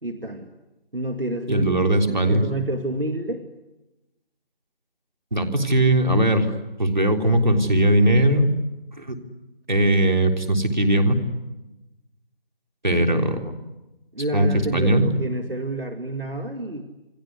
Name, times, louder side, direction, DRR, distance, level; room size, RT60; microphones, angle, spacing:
voice 1, 0.0-0.5 0.9-3.4 14.1-16.8, right 1 dB, 70° right, 5 dB, 2.5 m, -29 dB
voice 2, 1.5-2.4 5.3-6.5 6.8-8.5 9.0-9.2 9.7-11.2 12.8-13.5 14.3-15.1, right 1 dB, 50° right, 4 dB, 3.6 m, -19 dB
29.0 x 21.0 x 9.7 m, 1.0 s
figure-of-eight pair, 175°, 30 cm